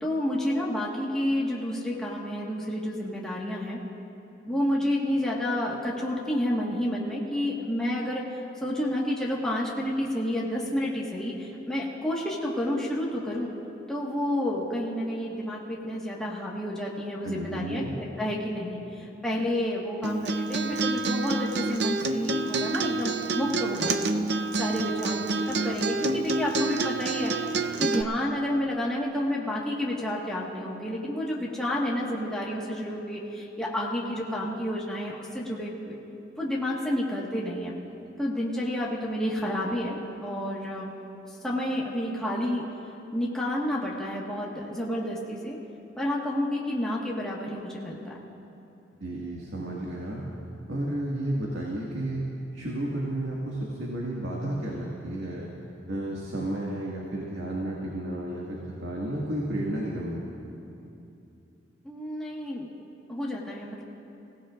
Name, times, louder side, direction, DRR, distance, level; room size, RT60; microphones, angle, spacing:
voice 1, 0.0-3.8 4.5-8.2 8.6-13.5 13.9-27.3 27.8-36.0 36.4-37.7 38.2-40.9 41.4-42.6 43.1-45.6 46.0-48.1 61.8-62.7 63.1-63.8, left 1 dB, 5° left, -6 dB, 1.5 m, -30 dB
voice 2, 17.2-17.9 49.0-50.2 50.7-52.2 52.5-55.5 55.9-60.2, right 1 dB, 90° right, -4 dB, 1.9 m, -32 dB
Acoustic guitar, 20.0-28.0, right 3 dB, 65° right, 0.6 m, -28 dB
27.5 x 17.0 x 2.5 m, 2.8 s
head